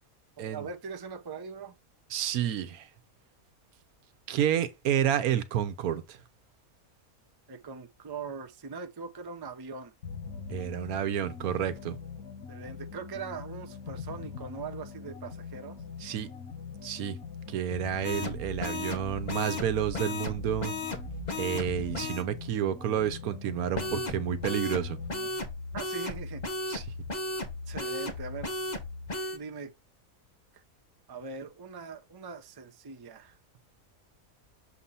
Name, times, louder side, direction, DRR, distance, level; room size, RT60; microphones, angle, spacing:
voice 1, 0.4-1.7 7.5-9.9 12.5-15.8 25.7-26.4 27.7-28.5 29.3-29.7 30.5-30.6 31.1-33.4, right 5 dB, 35° right, 0.3 m, -41 dB
voice 2, 2.1-2.9 4.3-6.2 10.5-12.0 16.0-16.3 16.8-17.2 17.5-20.7 21.4-25.0 26.7-26.8, right 10 dB, 90° right, 1.2 m, -30 dB
sound 1, 10.0-25.4, left 5 dB, 85° left, 2.2 m, -43 dB
sound 2, 18.0-22.2 23.7-29.4, left 2 dB, 35° left, 1.2 m, -35 dB
6.8 x 2.8 x 5.4 m
omnidirectional pair, 1.5 m